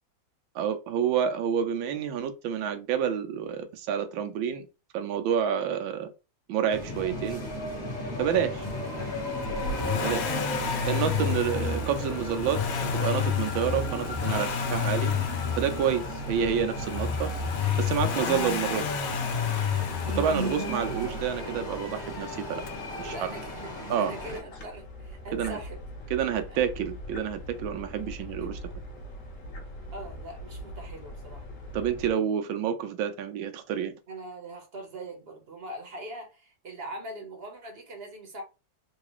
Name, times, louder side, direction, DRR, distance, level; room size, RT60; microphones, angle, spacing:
voice 1, 0.5-4.7 4.9-6.1 6.5-7.4 8.2-8.7 10.0-10.2 10.9-15.1 15.6-17.3 17.8-18.8 20.1-22.6 23.0-23.3 23.9-24.1 25.3-25.6 26.1-28.6 31.7-34.0, right 8 dB, 85° right, 1.4 m, -29 dB
sound 1, 6.7-24.4, left 1 dB, 30° left, 1.1 m, -35 dB
Accelerating revving vroom, 9.4-21.4 22.7-22.8, left 6 dB, 90° left, 1.5 m, -30 dB
voice 2, 20.3-20.6 23.0-23.7 24.0-25.8 26.3-26.6 28.4-28.5 29.9-31.4 34.1-38.4, right 1 dB, 45° right, 0.8 m, -42 dB
sound 2, 24.1-32.1, equal, 50° left, 1.2 m, -41 dB
3.8 x 2.3 x 3.0 m
omnidirectional pair, 2.1 m